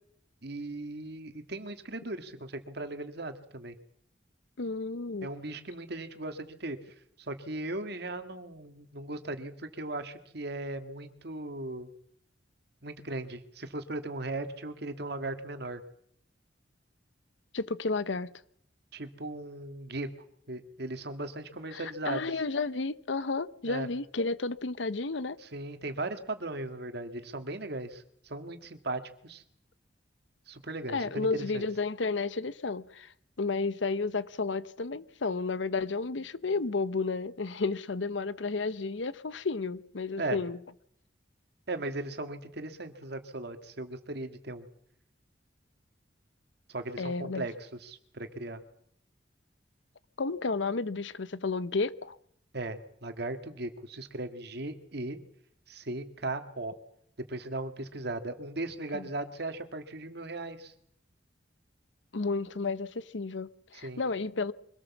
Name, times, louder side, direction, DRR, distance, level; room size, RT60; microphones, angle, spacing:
voice 1, 0.4-3.8 5.2-6.8 7.2-11.9 12.8-15.8 18.9-20.1 20.5-22.2 23.7-23.9 25.4-29.4 30.5-31.6 40.2-40.4 41.7-44.7 46.7-48.6 52.5-55.2 55.7-56.7 57.2-60.7 63.7-64.0, right 2 dB, 60° right, 1.9 m, -37 dB
voice 2, 4.6-5.3 17.5-18.3 21.7-25.4 30.9-40.6 47.0-47.4 50.2-52.2 58.9-59.0 62.1-64.5, left 3 dB, 85° left, 0.9 m, -32 dB
24.0 x 17.5 x 7.3 m
head